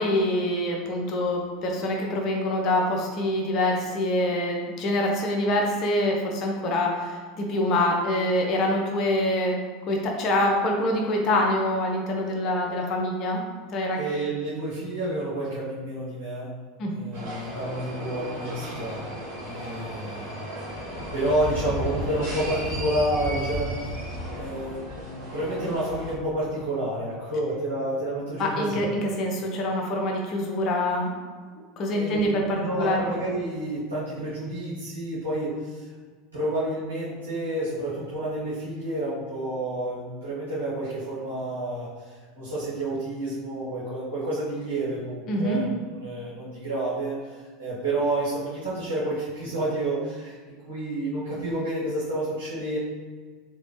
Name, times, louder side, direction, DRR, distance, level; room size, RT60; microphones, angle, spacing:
voice 1, 0.0-9.6 9.9-13.4 13.7-14.0 16.8-16.9 28.4-31.1 31.8-33.1 45.3-45.6, left 1 dB, 40° left, 0 dB, 0.7 m, -25 dB
voice 2, 14.0-16.5 16.9-19.1 19.4-20.3 21.1-23.7 24.3-28.9 31.9-35.8 36.3-52.8, right 1 dB, 75° right, -11 dB, 1.4 m, -30 dB
sound 1, 17.1-26.2, equal, 60° right, 1.3 m, -34 dB
3.8 x 3.1 x 3.3 m, 1.5 s
figure-of-eight pair, 80°, 0 cm